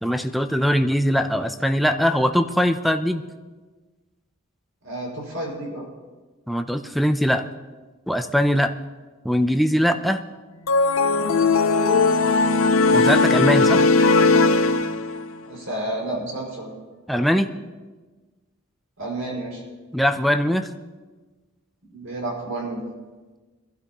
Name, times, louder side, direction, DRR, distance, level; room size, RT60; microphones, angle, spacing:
voice 1, 0.0-3.2 6.5-7.5 8.1-8.7 9.2-10.2 12.9-13.8 17.1-17.5 19.9-20.7, equal, ahead, 6 dB, 0.6 m, -21 dB
voice 2, 4.8-5.9 15.4-16.8 19.0-19.6 21.9-22.8, right 1 dB, 75° right, -2 dB, 5.7 m, -30 dB
sound 1, 10.7-15.3, left 3 dB, 75° left, 0.8 m, -18 dB
24.5 x 12.0 x 3.0 m, 1.3 s
head